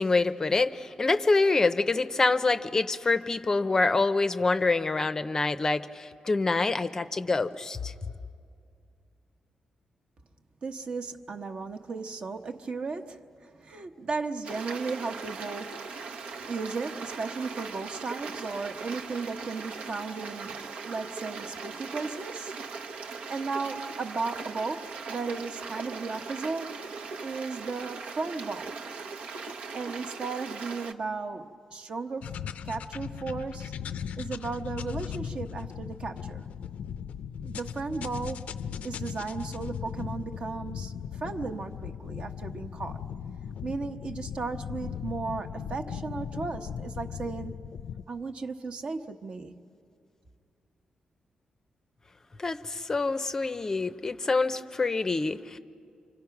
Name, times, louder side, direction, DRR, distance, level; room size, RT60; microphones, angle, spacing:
voice 1, 0.0-7.9 52.4-55.6, left 3 dB, 25° left, 11 dB, 0.6 m, -26 dB
voice 2, 10.6-15.9 16.5-22.5 23.3-26.8 27.2-28.8 29.7-32.3 32.6-33.7 34.2-36.4 37.4-38.5 38.8-43.0 43.6-47.5 48.1-49.6, right 4 dB, 50° right, 5 dB, 1.1 m, -35 dB
Stream, 14.4-30.9, right 4 dB, 80° right, 1.1 m, -39 dB
sound 1, 32.2-48.0, left 8 dB, 85° left, 0.5 m, -38 dB
29.5 x 26.0 x 5.9 m, 2.3 s
wide cardioid pair, 160°, 2 cm